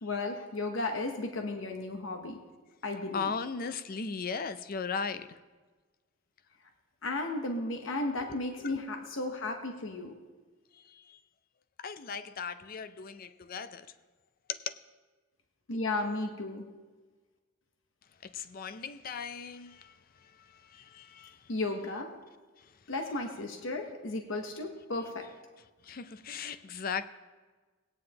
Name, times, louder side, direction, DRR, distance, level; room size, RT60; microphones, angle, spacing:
voice 1, 0.0-2.4 2.8-3.3 7.0-10.1 15.7-16.7 21.5-22.1 22.9-25.3, left 2 dB, 70° left, 0.9 m, -34 dB
voice 2, 3.1-5.4 8.3-8.4 8.6-8.8 10.7-11.2 11.8-13.9 14.5-14.7 18.2-19.9 20.4-21.4 25.8-27.1, left 5 dB, 45° left, 0.5 m, -37 dB
17.5 x 9.4 x 2.9 m
head